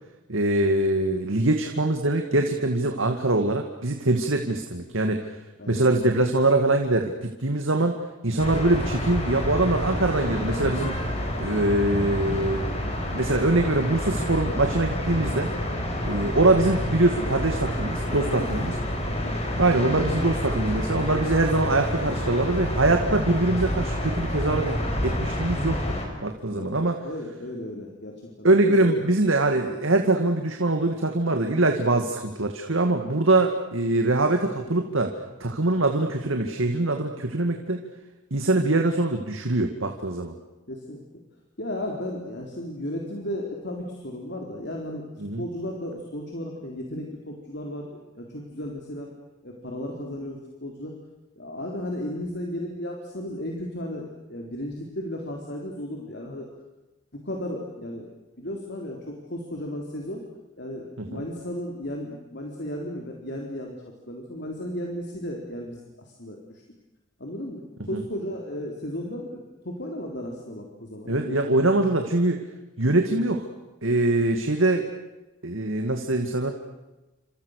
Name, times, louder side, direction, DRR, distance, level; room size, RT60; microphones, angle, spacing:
voice 1, 0.3-5.2 5.7-8.0 8.2-11.0 11.4-12.7 13.1-15.5 16.0-18.7 19.5-25.8 26.2-27.0 28.4-35.1 35.4-37.8 38.3-40.3 45.2-45.4 61.1-61.2 67.9-68.0 71.1-72.4 72.8-73.5 73.8-74.9 75.4-76.5, right 2 dB, 85° right, 4 dB, 2.3 m, -23 dB
sound 1, 8.4-26.0, left 1 dB, 30° left, 5.6 m, -28 dB
voice 2, 18.2-18.6 19.1-19.4 26.5-29.0 40.7-41.0 41.6-45.0 45.4-49.1 49.4-50.9 51.4-56.5 57.1-58.1 58.4-60.2 60.6-63.8 64.1-66.6 67.2-71.4, left 1 dB, 55° left, 0 dB, 3.9 m, -35 dB
29.0 x 27.0 x 6.7 m, 1.1 s
head